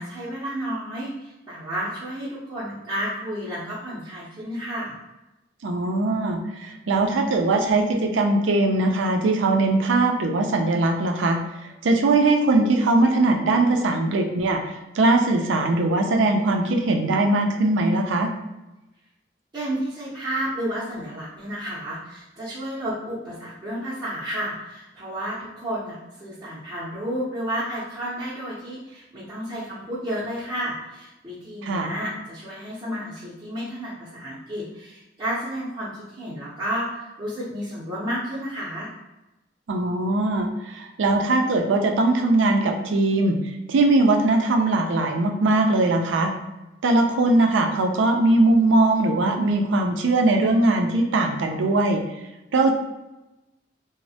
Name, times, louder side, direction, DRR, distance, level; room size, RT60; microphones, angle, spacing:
voice 1, 0.0-5.0 19.5-38.9, equal, 25° right, -10 dB, 0.6 m, -31 dB
voice 2, 5.6-11.4 11.8-18.3 31.6-31.9 39.7-43.4 43.7-46.3 46.8-52.0 52.5-52.7, right 2 dB, 85° right, 4 dB, 0.4 m, -20 dB
3.0 x 2.0 x 2.7 m, 0.99 s
head